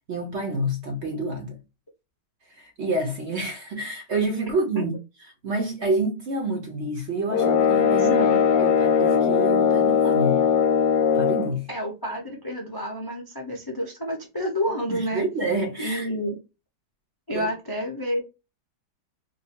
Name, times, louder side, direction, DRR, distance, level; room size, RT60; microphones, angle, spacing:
voice 1, 0.1-1.6 2.5-4.9 5.4-8.3 8.6-10.4 11.1-11.7 14.9-16.1 17.3-17.5, right 2 dB, 55° right, 0.8 m, -28 dB
sound 1, 7.3-11.6, left 7 dB, 65° left, 1.0 m, -20 dB
voice 2, 8.0-8.4 11.7-15.2 15.8-16.4 17.3-18.2, equal, 35° left, 0.3 m, -29 dB
2.7 x 2.6 x 4.2 m
omnidirectional pair, 1.9 m